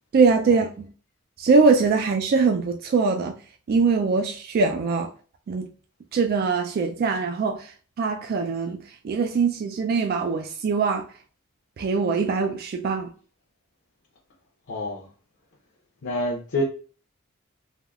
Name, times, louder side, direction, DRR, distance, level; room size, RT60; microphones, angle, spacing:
voice 1, 0.1-0.9 1.4-3.4 3.7-5.1 5.5-5.7 6.1-11.1 11.8-13.1, right 4 dB, 50° right, 0.3 m, -22 dB
voice 2, 14.7-15.1 16.0-16.6, left 1 dB, 60° left, 0.6 m, -27 dB
3.4 x 2.2 x 2.3 m
head